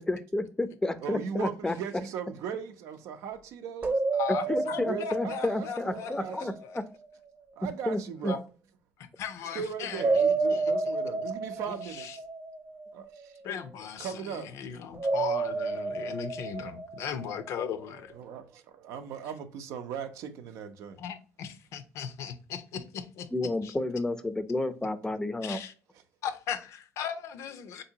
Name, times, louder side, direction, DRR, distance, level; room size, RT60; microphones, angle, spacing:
voice 1, 0.0-1.8 4.3-6.8 7.9-8.3 23.3-25.6, left 2 dB, 15° left, 0.5 m, -31 dB
voice 2, 1.0-4.0 4.4-6.6 7.6-8.4 9.5-12.2 12.9-13.4 14.0-14.6 16.0-16.1 18.1-21.0, right 7 dB, 75° right, 0.5 m, -39 dB
sound 1, 3.8-6.8 9.9-13.2 14.9-17.7, right 3 dB, 35° right, 0.8 m, -31 dB
voice 3, 4.1-6.8 8.3-8.4 9.0-11.0 11.7-12.2 13.4-18.1 21.0-23.3 23.6-23.7 25.4-25.7 26.2-27.8, left 8 dB, 70° left, 0.5 m, -38 dB
3.7 x 2.7 x 2.7 m
supercardioid pair, 90°, 5 cm